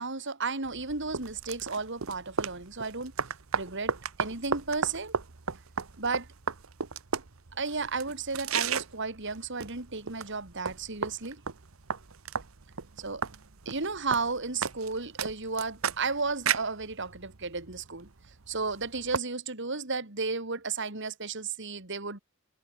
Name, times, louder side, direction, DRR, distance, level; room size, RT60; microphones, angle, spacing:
voice 1, 0.0-3.1 3.5-3.9 4.2-5.1 6.0-6.3 7.5-11.4 13.0-13.2 13.7-18.1 18.5-22.2, right 4 dB, 60° right, 3.6 m, -33 dB
sound 1, 0.6-19.2, right 6 dB, 85° right, 1.1 m, -35 dB
head